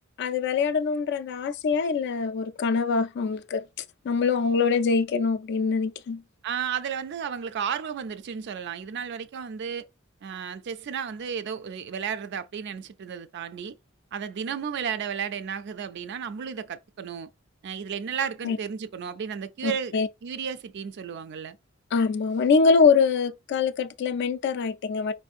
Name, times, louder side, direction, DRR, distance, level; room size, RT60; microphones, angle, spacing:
voice 1, 0.2-3.6 4.1-6.2 18.4-18.6 19.6-20.1 21.9-25.1, left 5 dB, 55° left, 0.3 m, -24 dB
voice 2, 6.4-9.8 10.2-13.8 14.1-17.3 17.6-19.9 20.2-21.6, right 7 dB, 55° right, 0.3 m, -33 dB
4.3 x 2.6 x 2.4 m
head